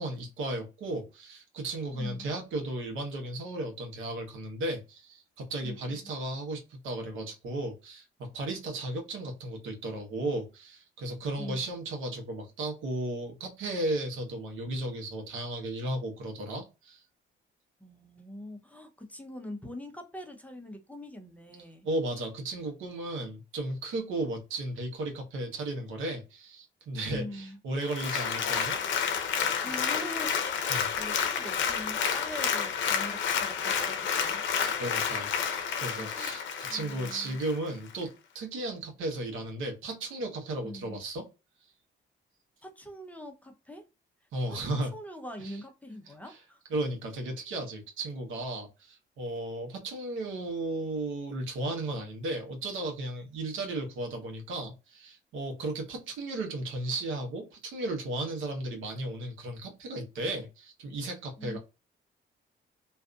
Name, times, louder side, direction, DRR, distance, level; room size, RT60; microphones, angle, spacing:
voice 1, 0.0-17.0 21.8-28.8 30.7-30.9 34.4-41.3 44.3-44.9 45.4-45.6 46.1-46.4 46.7-61.6, right 2 dB, 80° right, 1.0 m, -35 dB
voice 2, 1.9-2.3 5.6-6.1 11.4-11.7 17.8-21.9 27.0-27.6 29.6-34.5 35.6-36.4 36.6-37.4 40.6-41.0 42.6-43.8 44.5-44.6 44.9-46.6 61.4-61.6, left 1 dB, 5° left, 0.6 m, -43 dB
Applause, 27.8-37.6 38.0-38.1, left 7 dB, 70° left, 0.6 m, -30 dB
2.6 x 2.5 x 2.3 m
cardioid pair, 90°, 20 cm